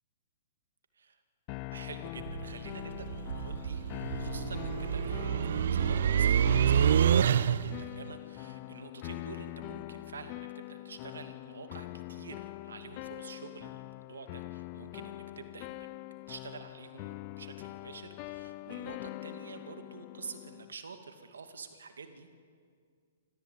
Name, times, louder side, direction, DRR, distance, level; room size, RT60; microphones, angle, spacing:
sound 1, 1.5-20.7, left 19 dB, 40° left, 0.5 m, -43 dB
voice 1, 1.7-3.8 4.1-15.9 16.3-22.4, right 5 dB, 85° right, 6 dB, 2.4 m, -48 dB
sound 2, 2.2-7.9, right 9 dB, 65° right, 0.5 m, -27 dB
28.5 x 14.5 x 8.7 m, 2.1 s
hypercardioid pair, 135°, 0 cm